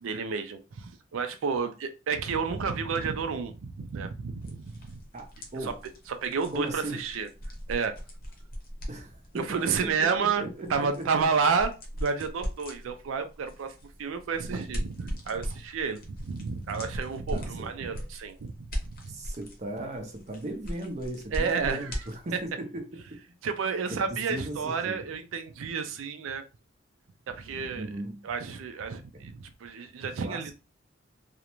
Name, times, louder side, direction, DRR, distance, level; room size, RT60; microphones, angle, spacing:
voice 1, 0.0-5.0 5.6-5.7 6.1-7.3 7.7-8.0 9.3-13.7 14.0-18.5 18.8-19.2 21.3-22.0 22.3-22.4 23.4-26.4 27.3-28.0 28.2-30.5, right 5 dB, 85° right, 0.4 m, -31 dB
sound 1, 4.4-22.5, equal, 45° left, 0.7 m, -40 dB
voice 2, 5.1-5.8 6.5-7.0 8.9-11.3 17.3-17.7 19.1-23.2 23.9-25.0 27.8-28.2 29.1-29.2 30.2-30.5, right 1 dB, 35° right, 0.6 m, -37 dB
2.4 x 2.1 x 2.9 m
head